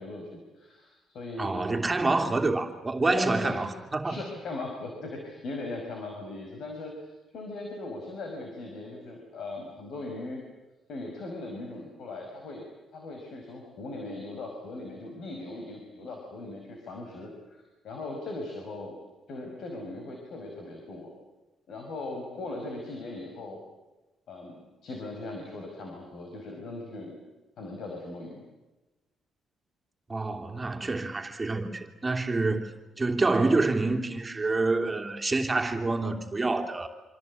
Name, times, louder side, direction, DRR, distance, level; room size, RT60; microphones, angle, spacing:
voice 1, 0.0-1.6 3.1-3.6 4.0-10.4 10.9-12.6 12.9-19.0 19.3-21.1 21.7-23.6 24.3-27.2 27.6-28.4, left 2 dB, 70° left, 2 dB, 5.3 m, -39 dB
voice 2, 1.4-4.2 30.1-32.7 33.0-36.9, right 3 dB, 20° right, 3 dB, 3.0 m, -27 dB
26.5 x 26.0 x 8.6 m, 1.1 s
cardioid pair, 90°, 0 cm